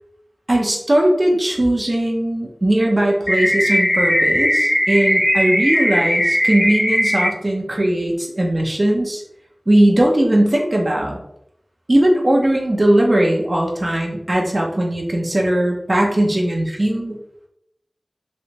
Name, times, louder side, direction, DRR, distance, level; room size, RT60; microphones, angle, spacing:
voice 1, 0.5-9.2 9.7-11.2 11.9-17.2, right 1 dB, 50° right, -1 dB, 0.7 m, -18 dB
sound 1, 3.3-7.3, equal, 55° left, 1.4 m, -18 dB
3.2 x 2.6 x 2.9 m, 0.77 s
wide cardioid pair, 40°, 0 cm